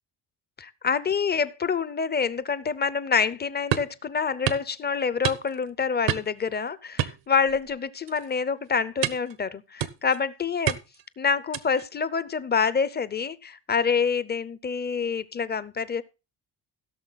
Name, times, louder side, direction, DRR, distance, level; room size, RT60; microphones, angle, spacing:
voice 1, 0.6-10.8 11.2-16.0, left 6 dB, 25° left, 0.5 m, -27 dB
sound 1, 3.7-4.0 4.5-4.7 5.2-5.7 6.1-6.4 7.0-7.7 8.1-8.3 9.0-9.3 9.8-10.2 10.7-11.0 11.5-11.8, right 12 dB, 85° right, 1.1 m, -29 dB
16.0 x 6.7 x 4.0 m
cardioid pair, 165°, 42 cm